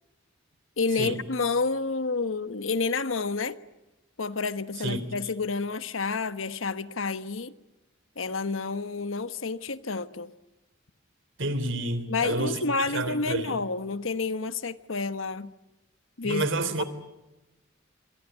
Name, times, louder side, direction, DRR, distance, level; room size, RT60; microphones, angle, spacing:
voice 1, 0.8-3.6 4.2-7.5 8.2-10.3 12.1-15.5 16.2-16.4, left 4 dB, 75° left, 1.2 m, -29 dB
voice 2, 11.4-13.5 16.2-16.8, right 2 dB, 65° right, 3.4 m, -29 dB
26.5 x 23.5 x 9.3 m
head